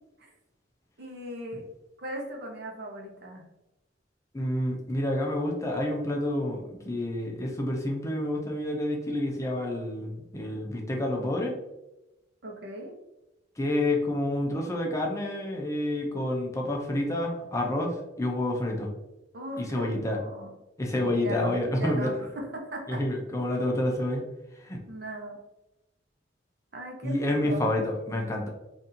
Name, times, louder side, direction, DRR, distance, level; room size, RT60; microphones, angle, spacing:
voice 1, 1.0-1.6 2.0-3.4 12.4-12.9 19.3-20.5 21.0-23.0 24.9-25.4 26.7-27.8, right 1 dB, 60° right, 0 dB, 0.8 m, -38 dB
voice 2, 4.3-11.5 13.6-18.9 19.6-20.2 20.8-22.1 22.9-24.3 24.6-24.8 27.0-28.5, left 1 dB, 15° left, 0 dB, 0.5 m, -29 dB
4.0 x 2.6 x 2.7 m, 0.95 s
head